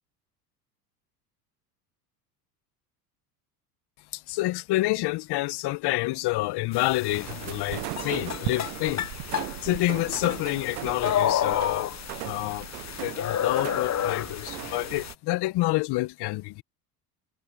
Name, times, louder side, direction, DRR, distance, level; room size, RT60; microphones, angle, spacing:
voice 1, 4.1-9.1 9.6-11.9 12.2-12.7 13.0-16.6, left 19 dB, 55° left, 1.4 m, -28 dB
sound 1, 6.7-15.1, left 10 dB, 35° left, 1.3 m, -31 dB
sound 2, 7.1-15.1, right 20 dB, 75° right, 1.1 m, -38 dB
hypercardioid pair, 80°, 48 cm